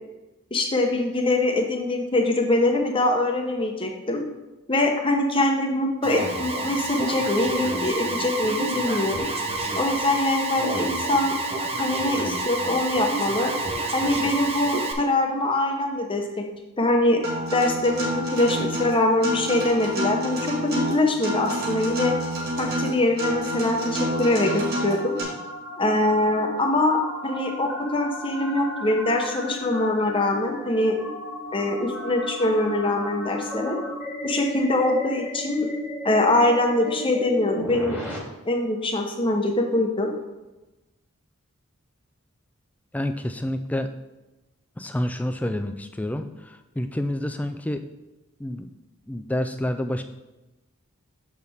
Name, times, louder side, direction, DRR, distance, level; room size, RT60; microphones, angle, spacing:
voice 1, 0.5-4.2 4.7-9.3 9.8-11.4 11.8-13.5 13.9-16.4 16.8-17.2 17.5-20.5 20.9-22.1 22.6-25.2 25.8-31.0 31.5-33.8 34.2-35.7 36.0-38.0 38.5-40.1, left 2 dB, 25° left, 2 dB, 0.8 m, -23 dB
Alarm, 6.0-14.9, right 2 dB, 25° right, 0.7 m, -28 dB
Acoustic guitar, 17.2-25.2, equal, 45° right, 1.8 m, -28 dB
sound 1, 23.1-38.2, left 1 dB, 10° right, 1.1 m, -36 dB
voice 2, 42.9-43.9 44.8-47.8 48.4-48.7 49.1-50.0, left 1 dB, 5° left, 7 dB, 0.3 m, -28 dB
7.2 x 6.2 x 3.5 m, 1.1 s
head